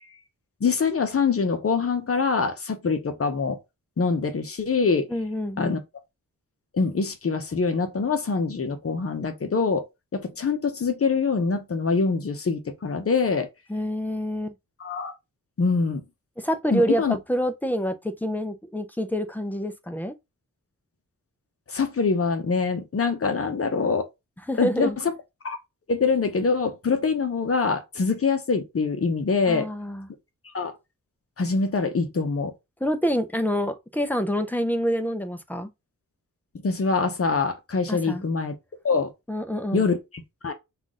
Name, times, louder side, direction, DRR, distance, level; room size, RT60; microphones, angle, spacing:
voice 1, 0.6-3.6 4.0-5.1 5.6-5.8 6.7-9.9 10.1-13.5 14.8-15.1 15.6-16.0 16.7-17.2 21.7-24.1 24.6-25.1 25.4-25.6 25.9-29.7 30.5-30.7 31.4-32.5 36.6-38.5 38.8-39.1 39.7-40.0 40.4-40.5, left 4 dB, 45° left, 0.8 m, -24 dB
voice 2, 5.1-5.8 13.7-14.5 16.4-20.2 24.5-25.0 29.5-30.1 32.8-35.7 37.9-38.2 39.3-39.8, equal, 5° left, 0.5 m, -27 dB
5.8 x 2.5 x 3.6 m
wide cardioid pair, 165°, 33 cm